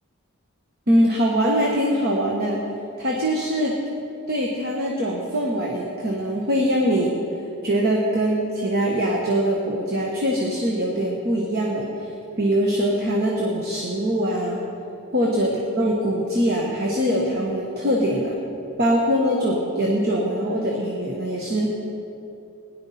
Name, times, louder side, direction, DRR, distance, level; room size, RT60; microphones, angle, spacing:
voice 1, 0.9-2.6 3.0-3.8 4.3-7.1 7.6-14.6 15.1-18.3 18.8-21.8, equal, 45° right, -1 dB, 1.2 m, -22 dB
17.5 x 10.5 x 4.2 m, 2.8 s
head